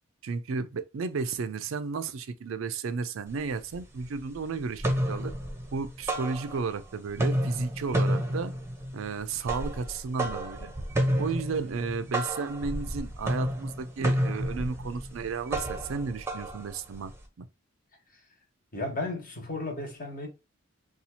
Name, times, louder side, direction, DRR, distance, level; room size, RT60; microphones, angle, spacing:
voice 1, 0.2-5.3 5.7-8.5 8.9-10.7 11.2-17.1 17.4-17.5, right 4 dB, 75° right, 0.4 m, -33 dB
sound 1, 3.3-3.4 3.7-4.3 4.6-6.8 7.1-17.2, equal, 15° right, 0.6 m, -31 dB
voice 2, 18.7-20.3, left 2 dB, 45° left, 1.2 m, -34 dB
2.8 x 2.4 x 4.1 m
head